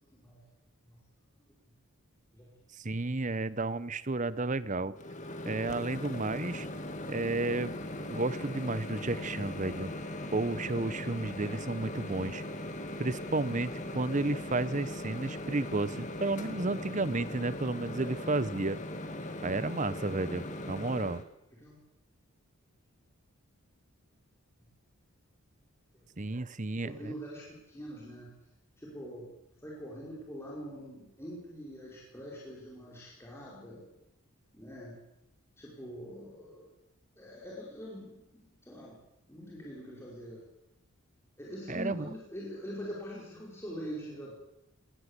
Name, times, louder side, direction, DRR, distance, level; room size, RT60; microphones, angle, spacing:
voice 1, 0.1-0.4 0.9-1.0 2.3-2.5 17.9-18.2 21.5-21.8 26.8-28.3 28.8-29.2 29.6-33.9 34.5-35.0 35.6-36.7 37.2-39.0 39.3-40.4 41.4-44.3, equal, 10° left, -4 dB, 5.1 m, -44 dB
voice 2, 2.7-5.0 5.4-6.7 7.1-7.8 8.1-9.9 10.3-12.4 13.0-18.8 19.4-21.2 26.2-27.1 41.7-42.1, right 2 dB, 35° right, 17 dB, 0.8 m, -32 dB
Microwave oven, 5.0-21.2, left 1 dB, 35° left, 2.1 m, -39 dB
22.5 x 18.5 x 8.3 m, 0.85 s
head